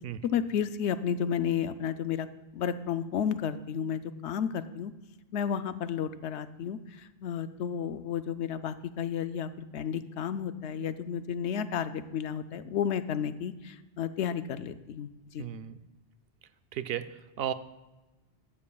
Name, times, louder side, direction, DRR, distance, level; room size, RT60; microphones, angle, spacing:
voice 1, 0.2-2.3 2.5-4.9 5.3-15.1 15.3-15.4, left 8 dB, 90° left, 12 dB, 0.9 m, -32 dB
voice 2, 15.4-15.8 16.7-17.5, right 9 dB, 70° right, 12 dB, 0.7 m, -34 dB
14.0 x 12.5 x 2.3 m, 1.1 s
omnidirectional pair, 1.1 m